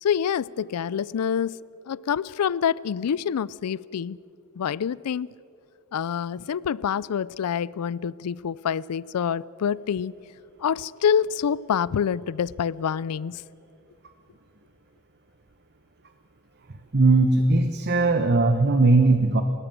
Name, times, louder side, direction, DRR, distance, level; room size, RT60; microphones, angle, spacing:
voice 1, 0.0-1.6 1.9-4.2 4.6-5.3 5.9-10.1 10.6-13.4, left 8 dB, 90° left, 22 dB, 0.4 m, -26 dB
voice 2, 16.9-19.4, right 3 dB, 50° right, 8 dB, 1.0 m, -19 dB
29.0 x 13.0 x 7.6 m, 2.6 s
head